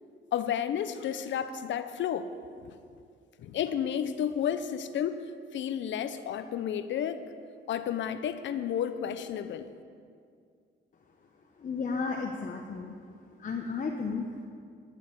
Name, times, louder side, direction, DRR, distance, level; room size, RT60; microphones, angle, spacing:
voice 1, 0.3-2.3 2.6-2.8 3.4-5.2 5.5-7.2 7.7-9.7, left 9 dB, 70° left, 11 dB, 0.8 m, -31 dB
voice 2, 11.6-13.0 13.4-14.3, left 4 dB, 40° left, 1 dB, 1.0 m, -33 dB
11.0 x 7.2 x 8.7 m, 2.3 s
cardioid pair, 90°, 20 cm